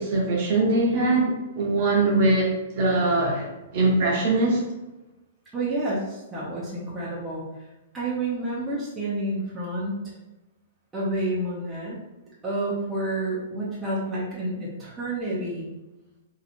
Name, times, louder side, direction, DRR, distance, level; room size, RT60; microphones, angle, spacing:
voice 1, 0.0-4.6, right 2 dB, 40° right, -2 dB, 0.8 m, -22 dB
voice 2, 5.5-7.7 7.9-10.0 10.9-12.0 12.4-15.7, right 1 dB, 10° right, -8 dB, 0.7 m, -29 dB
2.8 x 2.4 x 4.2 m, 1.0 s
hypercardioid pair, 170°, 0 cm